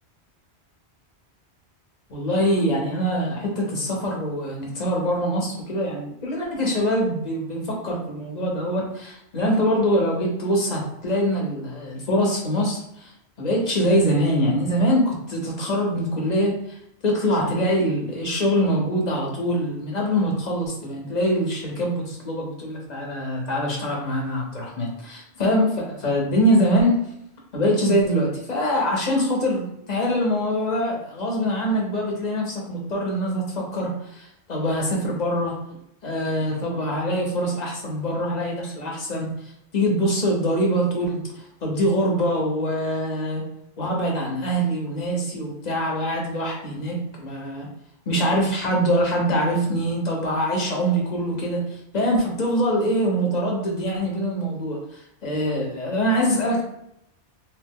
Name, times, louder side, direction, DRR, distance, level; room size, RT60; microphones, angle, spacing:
voice 1, 2.1-13.1 13.4-16.5 17.0-26.9 27.5-35.5 36.0-39.3 39.7-41.2 41.6-43.4 43.8-47.7 48.1-51.6 51.9-54.8 55.2-56.6, equal, 45° left, -2 dB, 0.9 m, -23 dB
2.9 x 2.1 x 3.5 m, 0.77 s
omnidirectional pair, 1.1 m